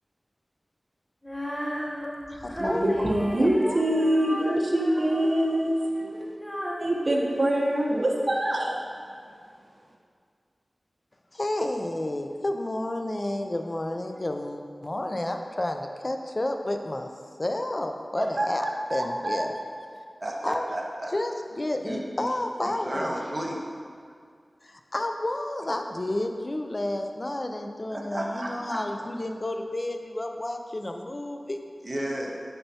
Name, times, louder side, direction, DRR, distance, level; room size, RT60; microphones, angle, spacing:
Female singing, 1.2-8.3, equal, 20° left, 0.9 m, -35 dB
voice 1, 2.0-3.1 3.4-4.2 11.3-17.1 17.4-19.5 20.4-20.7 21.1-23.1 24.6-31.6, left 1 dB, 40° left, 5 dB, 0.5 m, -31 dB
voice 2, 2.6-5.8 6.8-8.8 18.2-19.4, right 1 dB, 55° right, -2 dB, 1.0 m, -25 dB
voice 3, 20.2-21.1 21.8-22.3 22.6-23.6 27.9-28.8 31.8-32.4, right 1 dB, 35° right, -2 dB, 1.0 m, -33 dB
8.7 x 5.8 x 2.8 m, 2.1 s
wide cardioid pair, 60°, 0 cm